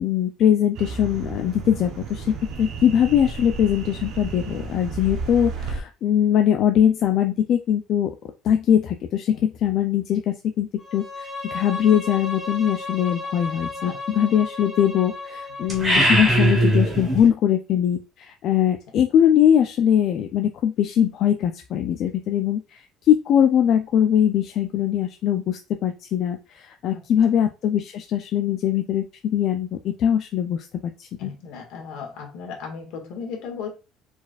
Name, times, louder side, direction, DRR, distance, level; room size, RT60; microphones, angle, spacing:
voice 1, 0.0-8.1 8.4-31.3, left 9 dB, 45° left, 5 dB, 0.4 m, -21 dB
sound 1, 0.7-5.8, right 4 dB, 55° right, 0.9 m, -33 dB
Bowed string instrument, 10.8-15.9, left 3 dB, 15° left, 1.1 m, -34 dB
sound 2, 15.7-17.3, right 1 dB, 15° right, 1.9 m, -19 dB
voice 2, 31.2-33.7, left 6 dB, 70° left, 1 dB, 1.7 m, -36 dB
4.7 x 4.1 x 2.4 m, 0.29 s
cardioid pair, 165°, 0 cm